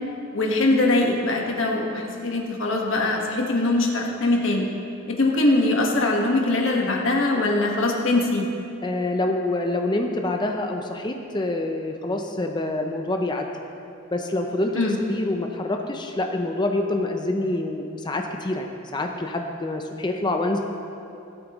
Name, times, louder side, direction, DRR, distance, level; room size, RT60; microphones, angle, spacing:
voice 1, 0.3-4.7 5.1-8.4 14.7-15.0, left 2 dB, 70° left, 0 dB, 1.5 m, -22 dB
voice 2, 8.8-13.5 14.1-14.8 15.1-20.6, left 2 dB, 20° left, 3 dB, 0.5 m, -26 dB
17.5 x 8.6 x 3.1 m, 2.7 s
head